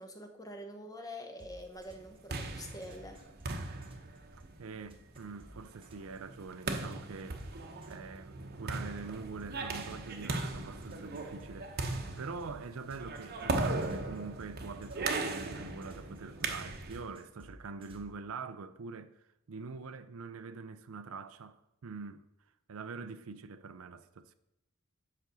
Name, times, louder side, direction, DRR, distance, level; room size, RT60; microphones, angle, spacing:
voice 1, 0.0-3.2, left 1 dB, 15° left, 1.0 m, -46 dB
sound 1, 1.4-8.5 8.8-18.1, right 1 dB, 25° right, 1.2 m, -54 dB
sound 2, 1.9-17.1, right 3 dB, 45° right, 1.0 m, -38 dB
voice 2, 4.3-22.3 22.7-24.3, right 4 dB, 65° right, 0.5 m, -45 dB
8.2 x 5.2 x 6.1 m
head